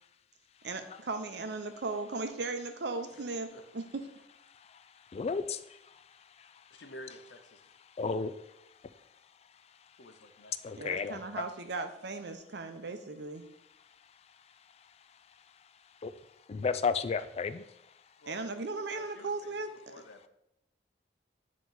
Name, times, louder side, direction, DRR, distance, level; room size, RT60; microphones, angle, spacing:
voice 1, 0.6-3.5 3.7-4.0 10.8-13.5 18.3-19.7, right 3 dB, 70° right, 7 dB, 0.6 m, -37 dB
voice 2, 5.1-5.6 8.0-8.3 10.6-11.2 16.0-16.1 16.5-17.6, left 5 dB, 35° left, 11 dB, 0.3 m, -32 dB
voice 3, 6.7-7.6 10.0-10.5 10.9-11.1 18.2-18.4 18.9-20.3, left 1 dB, 80° left, 5 dB, 0.8 m, -50 dB
9.2 x 3.1 x 3.9 m, 0.81 s
head